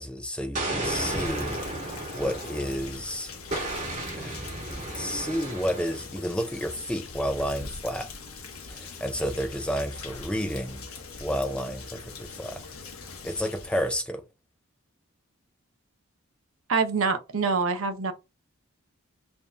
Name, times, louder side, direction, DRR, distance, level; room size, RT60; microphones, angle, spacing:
voice 1, 0.0-1.6 2.1-3.3 4.2-4.4 4.7-8.1 8.7-10.8 11.2-12.6 13.2-14.2, equal, 5° left, 0.4 m, -31 dB
Explosion, 0.5-3.0 3.5-6.1, right 2 dB, 35° right, 1.5 m, -33 dB
Rain, 0.8-13.9, left 4 dB, 80° left, 1.0 m, -42 dB
voice 2, 16.7-18.1, right 4 dB, 70° right, 0.7 m, -25 dB
3.5 x 2.6 x 3.4 m
head